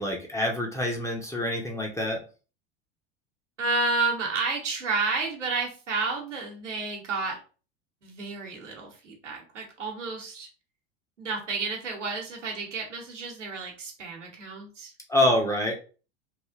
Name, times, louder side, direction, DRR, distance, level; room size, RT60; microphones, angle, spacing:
voice 1, 0.0-2.2 15.1-15.7, left 1 dB, 10° left, 1 dB, 0.6 m, -26 dB
voice 2, 3.6-7.4 8.0-10.5 11.2-14.9, right 3 dB, 85° right, 0 dB, 1.0 m, -31 dB
3.2 x 2.4 x 2.3 m, 0.36 s
figure-of-eight pair, 80°, 36 cm